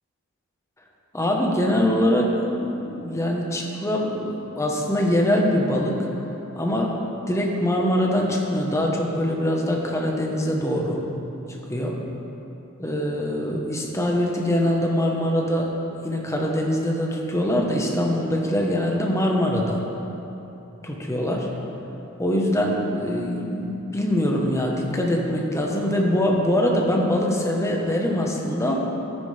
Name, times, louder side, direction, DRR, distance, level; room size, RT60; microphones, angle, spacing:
voice 1, 1.1-6.0 6.5-6.9 7.3-11.0 11.7-12.0 12.8-15.7 16.0-19.8 20.8-21.5 22.2-28.8, left 1 dB, 15° left, -1 dB, 1.1 m, -23 dB
13.5 x 9.8 x 3.4 m, 3.0 s
head